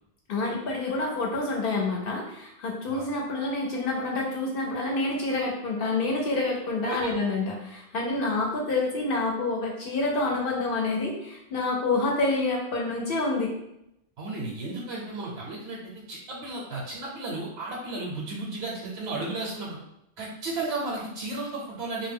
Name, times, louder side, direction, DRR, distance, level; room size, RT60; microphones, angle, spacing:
voice 1, 0.3-13.5, left 2 dB, 65° left, -1 dB, 0.7 m, -28 dB
voice 2, 14.2-19.8 20.2-22.1, right 2 dB, 75° right, -3 dB, 0.8 m, -34 dB
2.1 x 2.1 x 3.4 m, 0.81 s
omnidirectional pair, 1.1 m